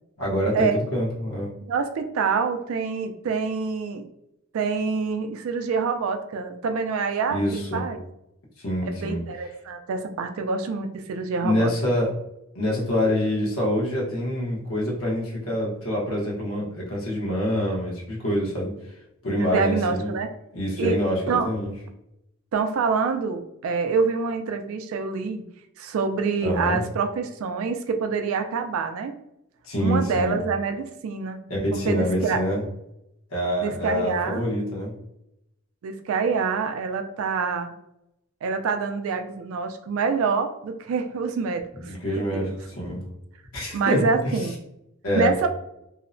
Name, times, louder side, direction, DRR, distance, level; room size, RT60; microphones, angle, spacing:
voice 1, 0.2-1.5 7.3-7.8 8.6-9.2 11.4-12.1 12.5-18.7 19.2-20.1 20.5-21.7 26.4-26.8 29.6-30.4 31.5-32.6 33.3-34.9 41.9-43.0 43.5-44.0 45.0-45.3, equal, 75° left, -3 dB, 0.9 m, -26 dB
voice 2, 1.7-4.1 4.5-8.0 8.9-11.7 19.4-20.3 20.8-21.0 21.3-21.5 22.5-25.4 25.8-29.2 29.8-31.4 31.7-32.4 33.6-34.4 35.8-37.7 38.4-42.5 43.7-44.5 45.1-45.6, right 5 dB, 70° right, 6 dB, 0.3 m, -26 dB
2.7 x 2.1 x 2.5 m, 0.83 s
head